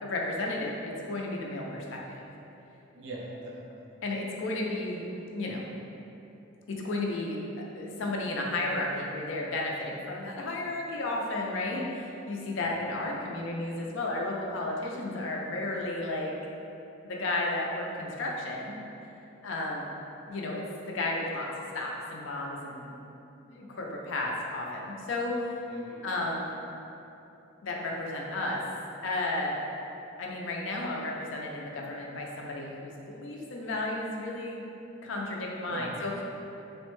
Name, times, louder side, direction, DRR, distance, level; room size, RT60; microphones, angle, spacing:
voice 1, 0.0-2.3 4.0-5.7 6.7-16.3 17.0-18.8 19.4-19.9 20.3-22.9 23.5-25.6 26.0-26.5 27.6-28.6 29.0-29.6 30.2-34.6 35.0-36.2, left 2 dB, 70° left, -1 dB, 0.4 m, -33 dB
voice 2, 2.9-4.0 12.6-12.8 25.7-26.2 35.7-36.1, right 1 dB, 65° right, -3 dB, 0.5 m, -42 dB
3.5 x 2.1 x 3.0 m, 2.9 s
head